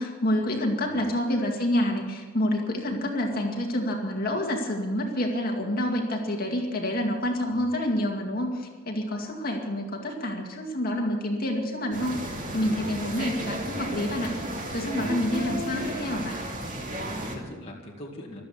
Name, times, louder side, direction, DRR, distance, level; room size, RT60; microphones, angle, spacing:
voice 1, 0.0-14.3 14.7-16.4, left 1 dB, 45° left, 1 dB, 2.2 m, -28 dB
sound 1, 11.9-17.4, right 1 dB, 40° right, 2.4 m, -33 dB
voice 2, 12.6-13.3 14.9-15.1 16.8-18.4, left 1 dB, 30° left, -3 dB, 2.1 m, -42 dB
15.5 x 12.5 x 7.2 m, 1.3 s
head